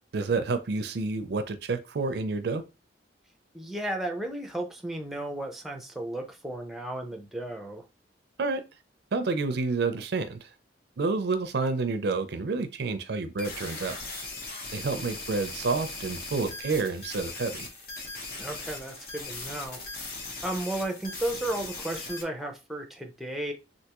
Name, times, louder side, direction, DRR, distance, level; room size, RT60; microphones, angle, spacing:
voice 1, 0.1-2.6 8.4-8.6 9.1-10.5 11.0-14.0 14.7-17.7, right 4 dB, 65° right, 0.4 m, -29 dB
voice 2, 3.5-7.8 18.4-19.8 20.4-23.5, right 1 dB, ahead, 0.5 m, -34 dB
sound 1, 13.4-22.2, left 3 dB, 60° left, 0.9 m, -39 dB
3.4 x 2.6 x 2.9 m
head